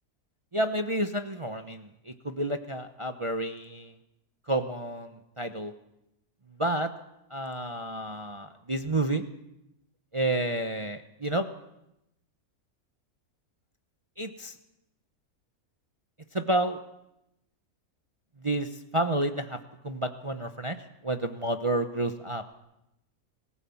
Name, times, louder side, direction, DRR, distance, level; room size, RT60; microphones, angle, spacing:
voice 1, 0.5-4.0 4.5-5.7 6.6-6.9 7.3-9.2 10.1-11.5 14.2-14.5 16.3-16.8 18.4-19.6 19.8-20.8 21.0-22.4, right 1 dB, 25° right, 6 dB, 0.8 m, -30 dB
26.0 x 16.0 x 7.1 m, 0.87 s
omnidirectional pair, 1.6 m